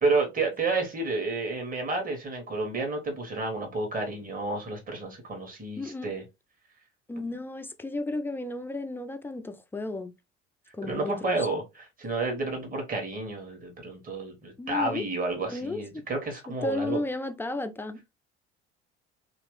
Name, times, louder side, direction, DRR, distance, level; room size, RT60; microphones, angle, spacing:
voice 1, 0.0-6.2 10.8-11.6 12.0-17.0, right 3 dB, 25° right, 1.5 m, -30 dB
voice 2, 5.8-6.1 7.1-10.1 10.7-11.5 14.6-15.1 15.5-16.0 16.5-18.1, left 2 dB, 5° left, 0.4 m, -33 dB
3.0 x 2.9 x 3.2 m
hypercardioid pair, 65°, 35 cm